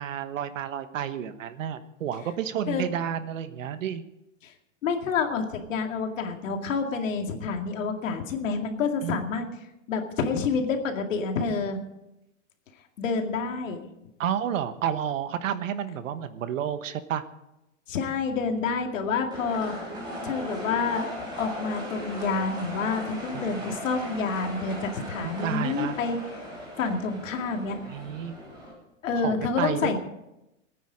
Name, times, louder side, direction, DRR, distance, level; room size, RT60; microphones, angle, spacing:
voice 1, 0.0-4.0 9.0-9.2 14.2-17.2 23.3-23.6 25.4-26.0 27.9-28.3 29.1-30.0, right 9 dB, 75° right, 11 dB, 1.3 m, -31 dB
voice 2, 4.8-9.5 9.9-11.8 13.0-13.8 17.9-19.8 20.2-21.1 21.4-26.4 26.8-27.8 29.0-30.0, left 5 dB, 75° left, 4 dB, 2.3 m, -28 dB
sound 1, 19.3-28.7, equal, 10° right, 3.8 m, -38 dB
21.5 x 9.3 x 5.0 m, 0.91 s
supercardioid pair, 165°, 39 cm